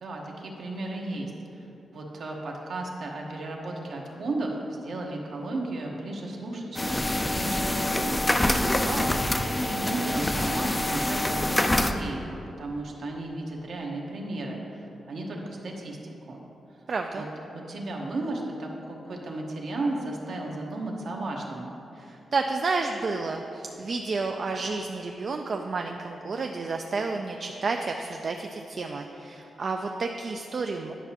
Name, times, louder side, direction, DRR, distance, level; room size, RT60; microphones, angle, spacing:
voice 1, 0.0-1.7 1.9-8.3 9.4-12.2 12.6-16.4 17.1-17.3 17.5-21.7, right 2 dB, 70° right, -1 dB, 1.0 m, -34 dB
sound 1, 6.7-11.9, left 1 dB, 15° left, 0.4 m, -26 dB
voice 2, 8.6-9.1 16.9-17.2 22.0-30.9, right 3 dB, 50° right, 3 dB, 0.3 m, -31 dB
10.0 x 5.8 x 2.9 m, 2.9 s
cardioid pair, 90°, 0 cm